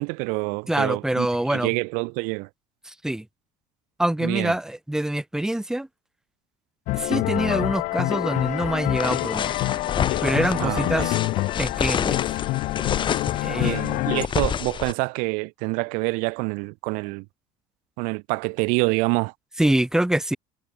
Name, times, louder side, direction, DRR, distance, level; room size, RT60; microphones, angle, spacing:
voice 1, 0.0-2.5 4.2-4.5 10.6-11.1 13.5-17.3 18.0-19.3, right 32 dB, 90° right, 3.8 m, -27 dB
voice 2, 0.7-1.7 2.8-3.2 4.0-5.9 6.9-9.7 10.2-11.2 11.6-12.2 13.4-13.8 19.6-20.4, right 1 dB, 5° right, 1.1 m, -25 dB
sound 1, 6.9-14.3, left 20 dB, 75° left, 4.1 m, -26 dB
sound 2, 9.0-14.9, left 8 dB, 35° left, 2.1 m, -28 dB
cardioid pair, 125°, 13 cm